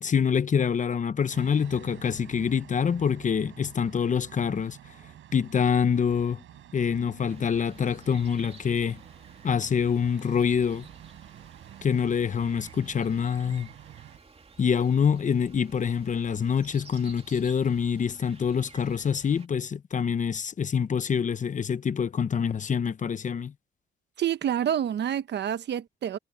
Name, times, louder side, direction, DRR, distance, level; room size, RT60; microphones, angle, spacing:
voice 1, 0.0-4.8 5.3-6.4 6.7-9.0 9.4-10.9 11.8-13.7 14.6-23.5, left 7 dB, 40° left, 0.9 m, -26 dB
sound 1, 1.3-14.2, right 12 dB, 75° right, 6.5 m, -49 dB
sound 2, 7.3-19.5, right 4 dB, 30° right, 2.8 m, -52 dB
voice 2, 24.2-26.2, right 10 dB, 60° right, 1.1 m, -28 dB
cardioid pair, 90°, 20 cm